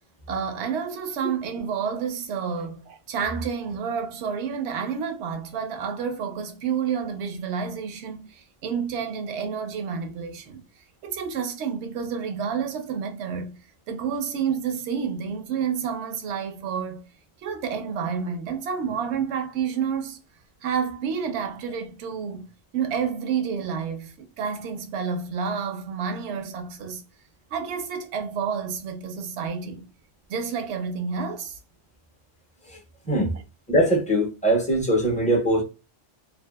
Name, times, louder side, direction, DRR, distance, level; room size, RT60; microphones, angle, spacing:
voice 1, 0.3-10.6 11.0-13.6 13.9-17.0 17.4-20.2 20.6-22.5 22.7-27.0 27.5-29.8 30.3-31.6 33.0-33.2, right 6 dB, 70° right, 0.8 m, -29 dB
voice 2, 33.7-35.6, right 1 dB, 10° left, 0.5 m, -21 dB
2.6 x 2.4 x 2.2 m
omnidirectional pair, 1.3 m